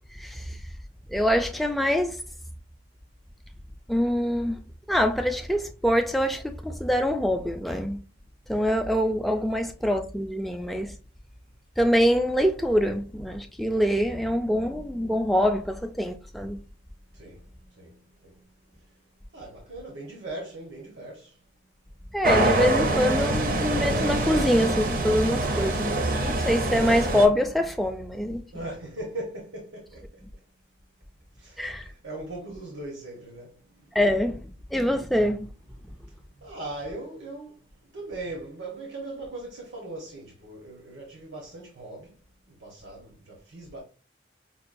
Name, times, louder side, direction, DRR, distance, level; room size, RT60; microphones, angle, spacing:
voice 1, 0.1-0.6 1.1-2.2 3.9-4.6 4.9-8.0 8.5-10.9 11.8-16.6 22.1-26.0 26.2-28.4 31.6-31.9 33.9-34.4 34.7-35.5, equal, ahead, 0.3 m, -24 dB
voice 2, 17.7-18.3 19.3-21.3 28.5-30.0 31.4-33.5 36.4-37.5 37.9-42.1 42.6-43.8, right 2 dB, 85° right, 1.1 m, -39 dB
sound 1, 22.2-27.3, right 2 dB, 45° right, 0.5 m, -25 dB
5.4 x 2.2 x 2.5 m
head